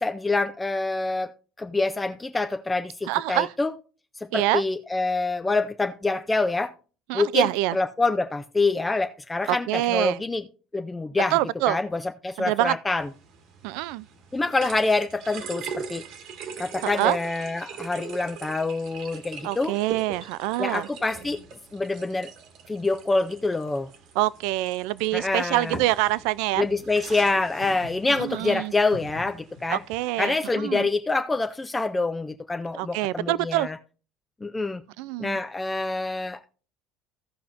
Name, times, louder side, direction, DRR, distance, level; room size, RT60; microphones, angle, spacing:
voice 1, 0.0-3.7 4.3-6.7 7.1-10.4 10.7-11.4 11.7-13.1 14.3-16.0 16.6-19.8 20.6-21.4 21.7-22.3 22.7-23.9 25.1-25.8 26.6-29.8 30.2-33.8 34.4-34.8 35.2-36.5, left 3 dB, 10° left, 0.3 m, -26 dB
voice 2, 3.1-3.5 4.3-4.6 7.1-7.8 9.5-10.2 11.3-11.8 12.4-12.8 13.6-14.1 16.8-17.2 19.4-20.9 24.2-26.7 28.2-28.7 29.7-30.3 30.6-30.9 32.8-33.7 35.0-35.4, right 16 dB, 70° right, 0.3 m, -25 dB
sound 1, 13.0-30.0, right 5 dB, 50° right, 1.3 m, -41 dB
16.5 x 5.7 x 2.5 m
cardioid pair, 170°, 0 cm